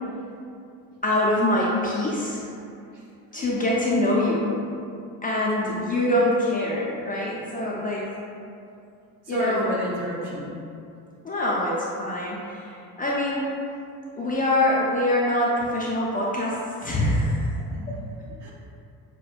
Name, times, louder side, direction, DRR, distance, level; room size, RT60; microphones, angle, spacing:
voice 1, 1.0-2.4 3.3-4.6 5.2-8.1 9.3-9.7 11.2-12.7 13.0-13.6 14.2-17.5 17.9-18.0, left 1 dB, 20° left, -5 dB, 0.4 m, -24 dB
voice 2, 5.3-5.8 9.2-10.5 17.7-18.0 18.4-18.5, equal, 50° right, -5 dB, 1.2 m, -32 dB
5.9 x 2.1 x 2.4 m, 2.6 s
supercardioid pair, 100°, 39 cm